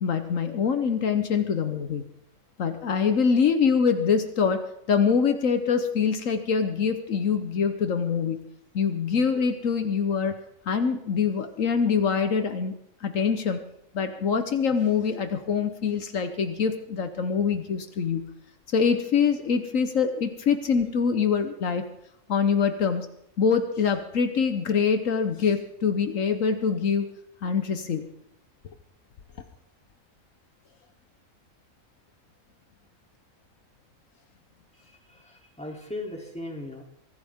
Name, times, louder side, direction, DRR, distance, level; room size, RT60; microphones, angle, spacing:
voice 1, 0.0-2.0 2.6-4.6 4.9-8.4 8.7-10.4 10.6-12.7 13.0-13.6 13.9-18.3 18.7-21.9 22.3-23.1 23.4-27.1 27.4-28.1, left 6 dB, 75° left, 8 dB, 1.4 m, -24 dB
voice 2, 34.8-36.8, left 2 dB, 5° left, 0 dB, 3.1 m, -38 dB
23.5 x 15.0 x 3.6 m, 0.74 s
omnidirectional pair, 1.4 m